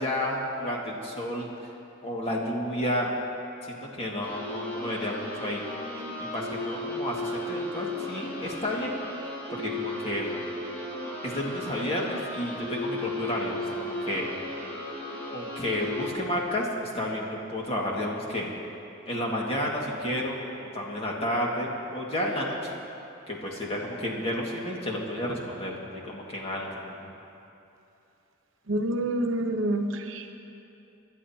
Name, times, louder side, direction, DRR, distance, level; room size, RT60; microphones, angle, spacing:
voice 1, 0.0-1.5 2.0-3.1 3.6-5.6 6.2-8.9 9.2-10.3 11.2-14.3 15.3-18.5 19.1-22.7 23.3-25.8 26.0-27.0, left 1 dB, 30° left, -2 dB, 1.9 m, -31 dB
sound 1, 4.2-16.1, left 1 dB, 10° left, 3.6 m, -35 dB
voice 2, 28.7-30.3, right 1 dB, 70° right, 4 dB, 1.0 m, -28 dB
26.0 x 11.5 x 2.9 m, 2.8 s
head